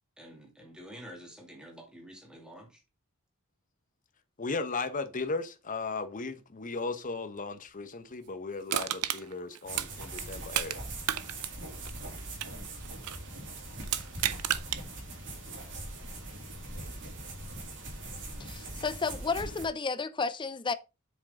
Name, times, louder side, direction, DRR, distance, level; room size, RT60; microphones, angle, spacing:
voice 1, 0.2-2.8 11.6-11.9, equal, 5° right, 2.7 m, -49 dB
voice 2, 4.4-10.8, left 3 dB, 35° left, 1.0 m, -36 dB
Crushing, 8.7-10.8 11.0-13.3 13.8-14.8 15.3-15.4, right 12 dB, 85° right, 0.6 m, -32 dB
sound 1, 9.6-19.6, right 2 dB, 55° right, 3.0 m, -41 dB
voice 3, 18.4-20.7, left 4 dB, 20° left, 0.5 m, -32 dB
7.7 x 6.5 x 3.7 m
head